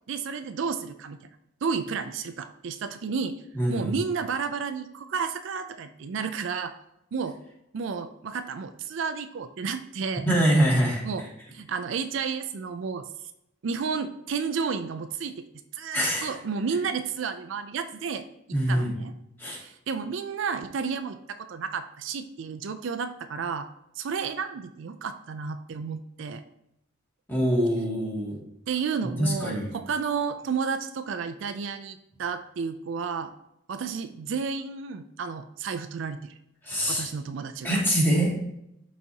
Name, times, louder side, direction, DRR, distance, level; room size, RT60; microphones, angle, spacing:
voice 1, 0.1-1.3 1.6-3.4 3.7-6.7 7.1-7.4 7.7-10.3 11.0-11.2 11.5-13.1 13.6-15.4 15.7-19.1 19.5-23.7 24.0-26.4 28.7-33.3 33.7-36.3 36.9-37.8, right 5 dB, 65° right, 9 dB, 0.4 m, -32 dB
voice 2, 3.5-3.9 10.2-11.0 15.9-16.3 18.5-18.9 19.4-19.6 27.3-28.4 29.2-29.7 36.6-37.1 37.6-38.3, equal, 10° left, -6 dB, 2.3 m, -24 dB
12.0 x 4.1 x 2.8 m, 0.82 s
head